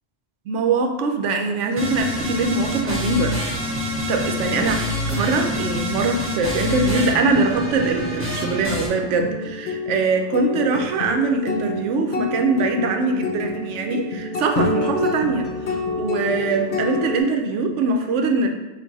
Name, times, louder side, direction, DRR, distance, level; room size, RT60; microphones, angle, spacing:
voice 1, 0.5-3.3 4.1-4.8 5.1-18.5, right 3 dB, 85° right, 4 dB, 0.9 m, -22 dB
sound 1, 1.8-8.9, equal, 15° right, 0.6 m, -26 dB
sound 2, 7.4-17.2, left 3 dB, 70° left, 0.9 m, -28 dB
4.4 x 2.6 x 4.0 m, 1.1 s
omnidirectional pair, 1.2 m